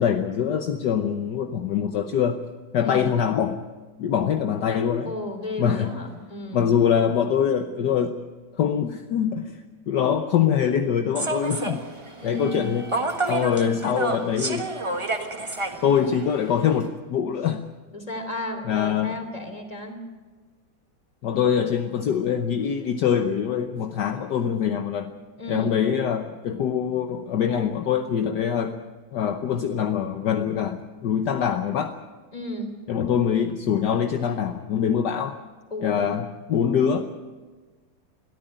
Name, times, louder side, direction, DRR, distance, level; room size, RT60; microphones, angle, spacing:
voice 1, 0.0-2.4 2.7-3.6 4.0-5.1 5.6-5.9 6.5-8.2 8.5-11.9 12.2-12.9 13.3-14.7 15.8-17.7 18.7-19.2 21.2-25.1 25.5-28.8 29.1-32.0 32.9-35.4 35.8-37.0, left 8 dB, 65° left, 7 dB, 1.4 m, -24 dB
voice 2, 2.8-3.1 5.0-6.7 12.2-12.7 17.9-20.0 23.6-23.8 25.4-25.8 32.3-32.8 35.7-36.1, left 1 dB, 20° left, 5 dB, 3.1 m, -33 dB
Human voice / Subway metro underground, 11.1-16.9, right 2 dB, 15° right, 1.5 m, -30 dB
22.5 x 14.0 x 9.0 m, 1.4 s
omnidirectional pair, 2.1 m